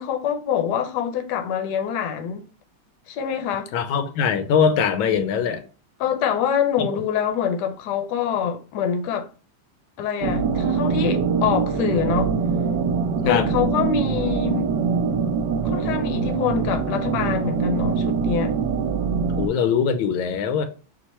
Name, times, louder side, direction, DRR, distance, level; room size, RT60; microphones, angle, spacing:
voice 1, 0.0-2.5 3.1-3.7 6.0-9.3 10.0-12.3 13.2-14.7 15.6-18.5, left 8 dB, 70° left, 1.1 m, -25 dB
voice 2, 3.7-5.6 13.2-13.5 19.3-20.7, left 7 dB, 85° left, 1.4 m, -21 dB
sound 1, 10.2-19.5, right 5 dB, 70° right, 1.2 m, -23 dB
4.6 x 2.4 x 4.1 m
omnidirectional pair, 2.1 m